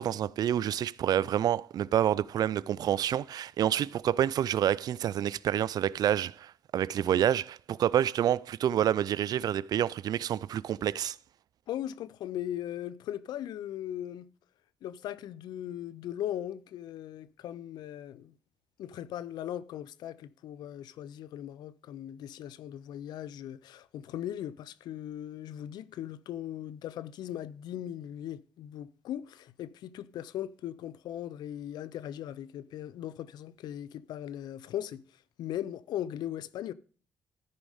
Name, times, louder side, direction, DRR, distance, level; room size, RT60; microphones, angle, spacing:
voice 1, 0.0-11.2, right 10 dB, 65° right, 0.3 m, -28 dB
voice 2, 11.7-14.3 14.8-18.4 18.8-35.0 35.4-36.7, left 11 dB, 85° left, 0.5 m, -39 dB
13.5 x 5.3 x 4.9 m
cardioid pair, 75°, 7 cm